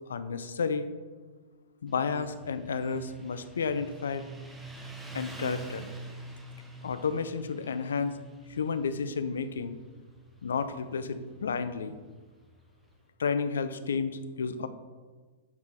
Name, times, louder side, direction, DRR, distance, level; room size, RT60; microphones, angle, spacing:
voice 1, 0.1-0.9 1.8-4.2 5.1-5.9 6.8-8.2 8.5-9.8 10.4-12.0 13.2-14.7, left 5 dB, 65° left, 11 dB, 0.4 m, -31 dB
Motorcycle, 1.9-13.0, right 3 dB, 10° right, 0.7 m, -47 dB
7.6 x 3.7 x 4.3 m, 1.4 s
figure-of-eight pair, 100°, 0 cm